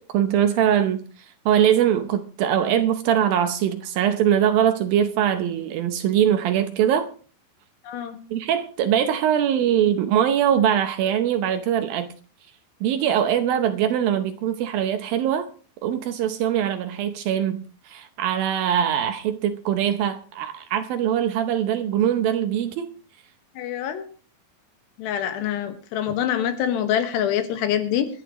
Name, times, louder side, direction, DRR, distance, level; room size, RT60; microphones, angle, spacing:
voice 1, 0.1-7.1 8.3-12.1 12.8-15.5 15.8-22.9, right 9 dB, 75° right, 2.3 m, -22 dB
voice 2, 7.8-8.2 23.6-24.0 25.0-28.1, left 10 dB, 85° left, 3.6 m, -25 dB
25.0 x 9.9 x 3.1 m
omnidirectional pair, 4.8 m